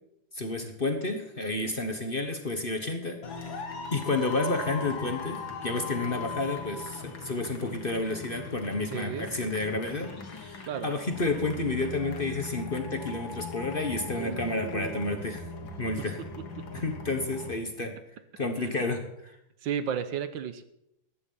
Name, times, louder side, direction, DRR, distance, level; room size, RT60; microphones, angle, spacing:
voice 1, 0.3-3.6 3.9-15.5 15.8-16.2 16.7-17.9 18.4-19.4, left 2 dB, 35° left, 6 dB, 1.2 m, -31 dB
sound 1, 3.2-17.5, left 4 dB, 85° left, 2.5 m, -39 dB
voice 2, 8.9-9.3 10.7-10.9 14.2-15.2 18.6-18.7 19.6-20.6, right 8 dB, 75° right, 12 dB, 1.6 m, -34 dB
14.5 x 11.0 x 5.6 m, 0.81 s
omnidirectional pair, 2.1 m